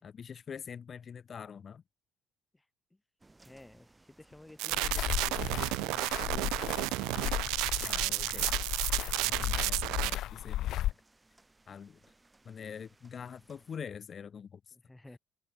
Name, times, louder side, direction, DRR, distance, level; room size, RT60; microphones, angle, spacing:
voice 1, 0.0-1.8 7.8-8.6 9.1-10.9 11.7-12.0 12.4-14.7, left 7 dB, 45° left, 3.0 m, -45 dB
sound 1, 3.2-13.8, right 2 dB, 15° right, 4.9 m, -63 dB
voice 2, 3.4-7.6 14.7-15.2, left 2 dB, 10° left, 3.4 m, -54 dB
sound 2, 4.6-10.1, right 22 dB, 85° right, 0.4 m, -32 dB
sound 3, 4.7-10.9, left 13 dB, 70° left, 0.3 m, -35 dB
supercardioid pair, 85°, 0 cm